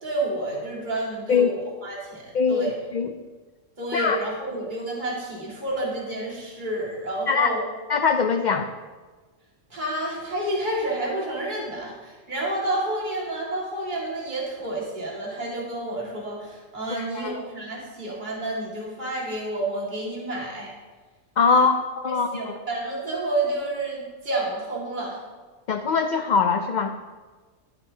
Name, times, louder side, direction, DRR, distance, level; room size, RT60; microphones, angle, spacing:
voice 1, 0.0-2.7 3.8-7.6 9.7-20.7 21.5-21.7 22.0-25.2, right 1 dB, 40° right, -5 dB, 2.4 m, -30 dB
voice 2, 3.9-4.2 7.3-7.5 7.9-8.7 17.0-17.4 21.4-21.7 22.0-22.5 25.7-27.0, left 5 dB, 55° left, 6 dB, 0.5 m, -22 dB
13.5 x 11.5 x 2.8 m, 1.4 s
omnidirectional pair, 1.3 m